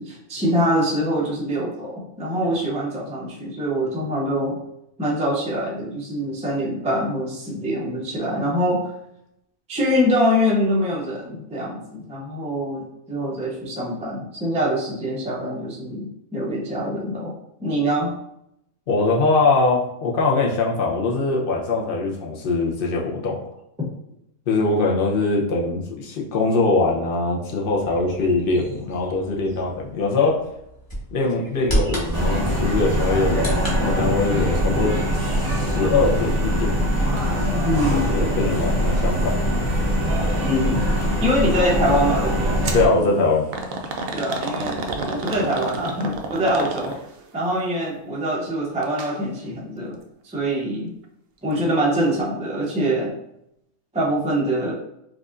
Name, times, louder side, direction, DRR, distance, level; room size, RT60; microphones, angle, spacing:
voice 1, 0.0-4.6 5.0-8.9 9.7-17.3 17.6-18.1 23.8-23.9 37.6-38.1 40.4-40.8 41.2-42.7 44.1-47.0 47.3-50.0 50.2-50.9 51.4-53.1 53.9-54.7, equal, 10° right, -4 dB, 0.4 m, -24 dB
voice 2, 18.9-23.4 24.5-30.4 31.1-36.7 38.0-39.4 42.7-43.5, left 3 dB, 50° left, -2 dB, 0.7 m, -22 dB
Bird vocalization bird call bird song, 27.7-33.8, right 1 dB, 15° left, 1.0 m, -31 dB
sound 1, 32.1-42.9, equal, 35° right, 0.8 m, -22 dB
sound 2, 42.6-42.9 43.5-47.2 48.8-49.1 49.5-49.6 50.4-50.5, right 3 dB, 70° right, 0.5 m, -29 dB
4.8 x 2.5 x 2.4 m, 0.79 s
omnidirectional pair, 1.5 m